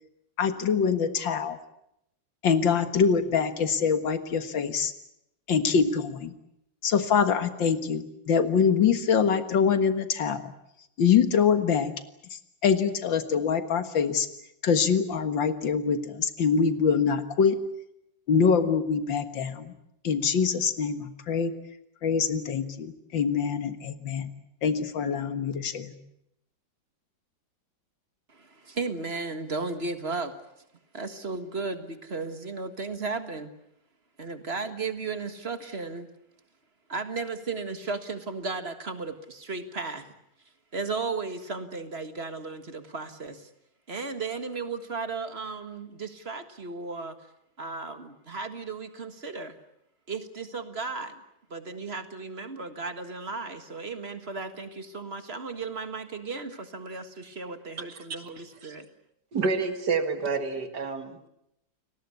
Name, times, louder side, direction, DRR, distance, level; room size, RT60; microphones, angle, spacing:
voice 1, 0.4-1.6 2.4-4.9 5.5-6.3 6.8-10.5 11.0-11.9 12.3-14.3 14.6-17.6 18.3-19.7 20.0-21.5 22.0-24.3 24.6-25.9, left 6 dB, 85° left, 10 dB, 2.3 m, -24 dB
voice 2, 28.3-30.3 30.9-33.5 34.2-36.1 36.9-40.1 40.7-43.5 43.9-47.2 47.6-49.6 50.1-51.2 51.5-58.9, right 4 dB, 35° right, 9 dB, 1.8 m, -35 dB
voice 3, 57.9-58.2 58.6-58.7 59.3-61.3, right 4 dB, 60° right, 8 dB, 2.5 m, -29 dB
30.0 x 19.0 x 8.3 m, 0.80 s
omnidirectional pair, 2.0 m